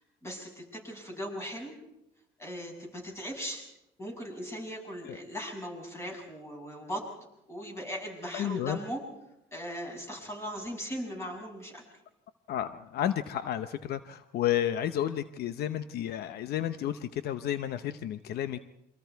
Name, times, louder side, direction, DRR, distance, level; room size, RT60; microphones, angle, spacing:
voice 1, 0.0-1.8 2.4-3.6 4.0-7.0 7.5-9.0 9.5-11.8, equal, 15° left, 1 dB, 7.6 m, -38 dB
voice 2, 8.3-8.8 12.5-18.6, left 11 dB, 70° left, 12 dB, 0.8 m, -31 dB
28.0 x 25.0 x 4.6 m, 0.86 s
cardioid pair, 110°, 17 cm